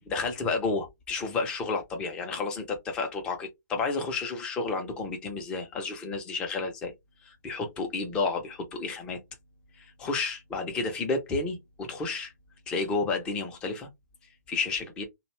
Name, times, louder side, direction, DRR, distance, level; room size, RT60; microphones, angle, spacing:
voice 1, 0.1-6.9 7.4-9.2 9.7-12.3 12.7-13.9 14.5-15.0, left 3 dB, 10° left, 0.4 m, -31 dB
2.6 x 2.1 x 3.0 m
hypercardioid pair, 160°, 9 cm